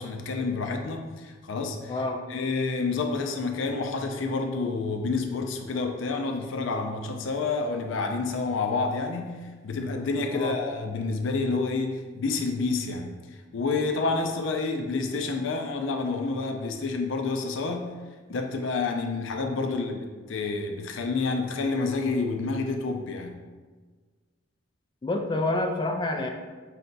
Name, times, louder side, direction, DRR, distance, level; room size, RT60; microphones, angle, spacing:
voice 1, 0.0-2.0 2.3-13.1 13.5-17.9 18.3-23.4, left 3 dB, 85° left, 4 dB, 0.5 m, -29 dB
voice 2, 1.9-2.2 10.3-10.5 19.6-19.8 25.0-26.3, left 2 dB, 25° left, 3 dB, 0.3 m, -28 dB
4.8 x 2.2 x 3.9 m, 1.4 s
head